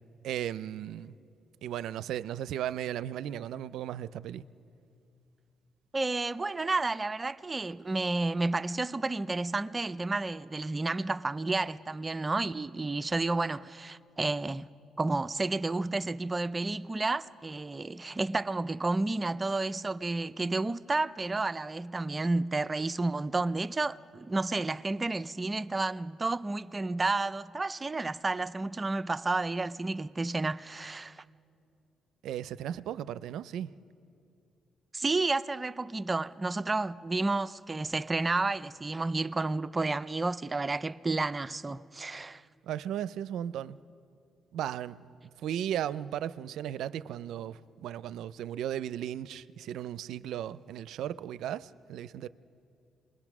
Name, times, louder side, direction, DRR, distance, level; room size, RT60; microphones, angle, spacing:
voice 1, 0.2-1.2 1.6-4.5 32.2-33.7 42.6-43.8 44.5-45.0 45.4-52.3, right 11 dB, 80° right, 0.4 m, -36 dB
voice 2, 5.9-14.7 15.0-31.2 34.9-42.4, right 3 dB, 25° right, 0.5 m, -31 dB
27.0 x 21.0 x 6.0 m
cardioid pair, 90°, 0 cm